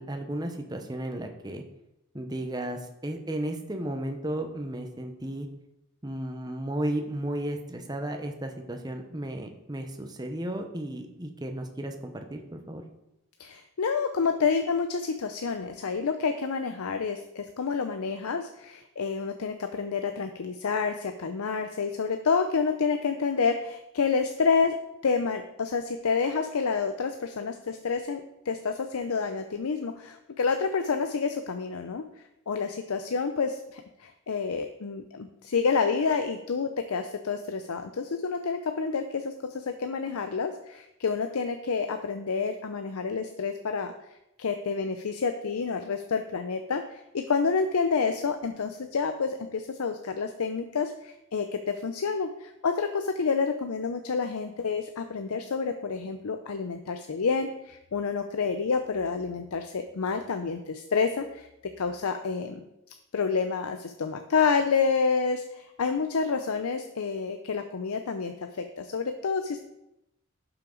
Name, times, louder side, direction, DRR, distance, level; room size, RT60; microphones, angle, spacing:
voice 1, 0.0-1.6 2.1-5.5 6.0-12.8, right 1 dB, 20° right, 5 dB, 0.8 m, -34 dB
voice 2, 13.4-24.7 25.0-32.0 32.5-43.9 44.4-61.5 61.8-62.6 63.1-69.6, left 5 dB, 85° left, 7 dB, 0.6 m, -29 dB
12.0 x 5.9 x 3.9 m, 0.88 s
head